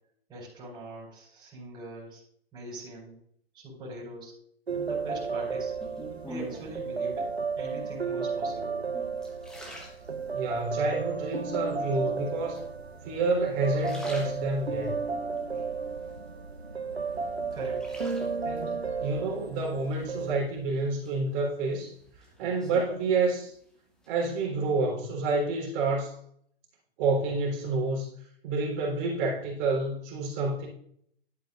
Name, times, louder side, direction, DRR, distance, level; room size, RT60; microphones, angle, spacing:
voice 1, 0.3-2.2 2.5-3.2 3.5-4.3 4.7-5.7 6.2-7.3 7.6-8.8 17.4-17.8, right 1 dB, 15° right, -7 dB, 4.5 m, -42 dB
sound 1, 4.7-20.3, right 5 dB, 90° right, 0.9 m, -33 dB
sound 2, 5.8-6.9 7.6-8.1 8.7-10.6 11.1-11.7 12.6-13.2 13.6-14.9 15.4-16.6 17.0-18.6 20.0-20.6 21.0-23.7 23.9-24.4, equal, ahead, 1.4 m, -46 dB
voice 2, 10.3-12.6 13.0-14.9 18.4-21.9 22.4-23.5 24.1-26.2 27.0-28.1 28.4-30.7, right 3 dB, 30° right, -1 dB, 3.7 m, -29 dB
11.5 x 8.9 x 2.5 m, 0.65 s
figure-of-eight pair, 115°, 31 cm